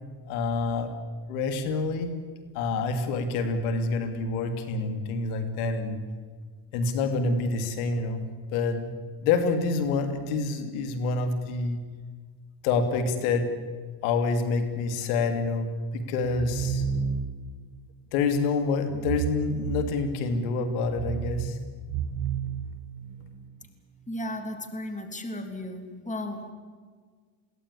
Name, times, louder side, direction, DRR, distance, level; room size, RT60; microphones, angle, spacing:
voice 1, 0.3-0.9 1.3-2.1 2.5-6.0 6.7-8.2 8.5-8.9 9.2-11.8 12.6-13.5 14.0-16.8 18.1-21.6, left 4 dB, 85° left, 9 dB, 2.9 m, -27 dB
sound 1, 16.4-17.5 18.9-20.3 20.8-23.3, right 7 dB, 55° right, 2.1 m, -32 dB
voice 2, 24.1-26.5, left 1 dB, 15° left, 6 dB, 3.6 m, -35 dB
22.5 x 17.0 x 9.9 m, 1.5 s
supercardioid pair, 100°, 42 cm